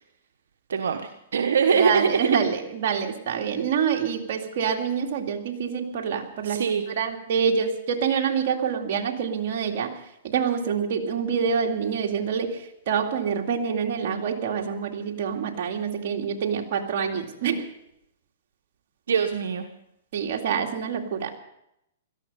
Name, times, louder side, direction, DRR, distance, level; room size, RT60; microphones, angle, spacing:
voice 1, 0.7-2.4 6.4-6.8 19.1-19.7, right 6 dB, 80° right, 5 dB, 1.1 m, -23 dB
voice 2, 1.6-17.7 20.1-21.4, right 7 dB, 55° right, 1 dB, 2.3 m, -26 dB
17.0 x 13.5 x 5.4 m, 0.80 s
hypercardioid pair, 140°, 0 cm